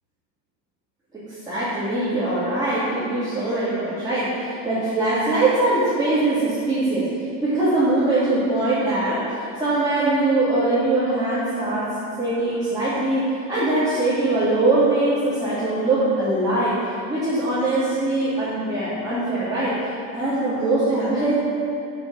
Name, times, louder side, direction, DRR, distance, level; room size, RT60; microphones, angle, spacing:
voice 1, 1.1-7.1 7.4-11.9 12.2-19.8 20.1-21.3, right 2 dB, 10° right, -13 dB, 2.7 m, -22 dB
8.7 x 7.2 x 6.5 m, 2.6 s
cardioid pair, 140°, 45 cm